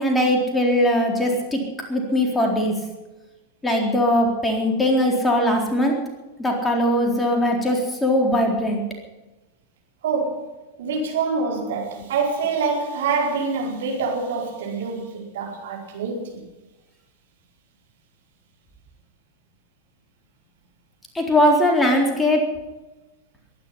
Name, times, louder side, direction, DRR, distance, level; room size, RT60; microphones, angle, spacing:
voice 1, 0.0-1.6 1.9-2.8 3.6-5.9 6.4-8.8 21.1-22.4, left 1 dB, 10° left, 0 dB, 4.0 m, -20 dB
voice 2, 10.0-16.4, right 4 dB, 60° right, -1 dB, 4.6 m, -26 dB
22.5 x 11.0 x 5.7 m, 1.1 s
figure-of-eight pair, 90°, 0 cm